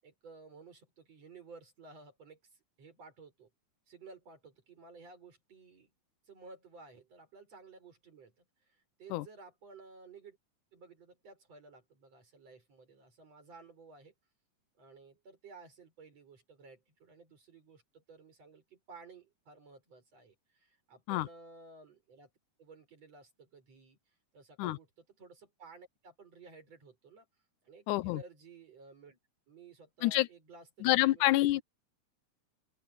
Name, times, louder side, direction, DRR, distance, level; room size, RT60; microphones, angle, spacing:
voice 1, 0.0-3.5 3.9-5.9 6.3-10.4 10.7-14.1 14.8-22.3 22.6-27.3 27.6-29.2 29.5-31.3, right 4 dB, 55° right, 7.3 m, -55 dB
voice 2, 27.9-28.2 30.0-30.3 30.8-31.6, left 17 dB, 85° left, 2.2 m, -27 dB
open air
omnidirectional pair, 3.5 m